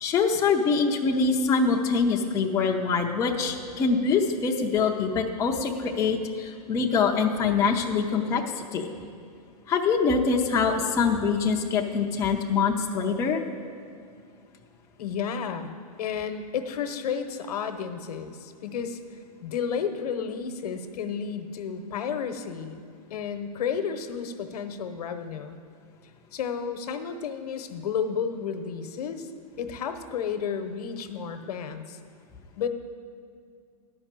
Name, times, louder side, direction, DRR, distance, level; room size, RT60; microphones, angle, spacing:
voice 1, 0.0-8.9 9.7-13.4, left 5 dB, 15° left, 1 dB, 0.5 m, -24 dB
voice 2, 15.0-15.7 16.0-19.0 19.4-22.8 23.1-25.6 26.3-29.3 29.6-32.0 32.5-32.7, left 7 dB, 70° left, 8 dB, 0.9 m, -32 dB
11.0 x 5.4 x 7.4 m, 2.3 s
hypercardioid pair, 150°, 20 cm